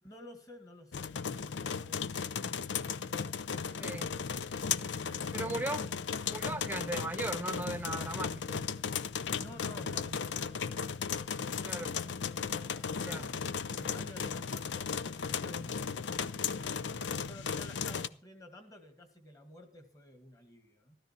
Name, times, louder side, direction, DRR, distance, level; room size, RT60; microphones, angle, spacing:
voice 1, 0.0-2.9 4.9-6.3 9.3-12.2 12.7-15.8 16.6-21.0, left 1 dB, 20° left, 6 dB, 1.9 m, -52 dB
sound 1, 0.9-18.1, left 6 dB, 85° left, 0.5 m, -36 dB
voice 2, 3.8-4.1 5.3-5.9 6.3-9.0 11.6-11.9 13.0-13.3, right 2 dB, 10° right, 9 dB, 0.8 m, -38 dB
13.5 x 13.0 x 4.4 m, 0.42 s
head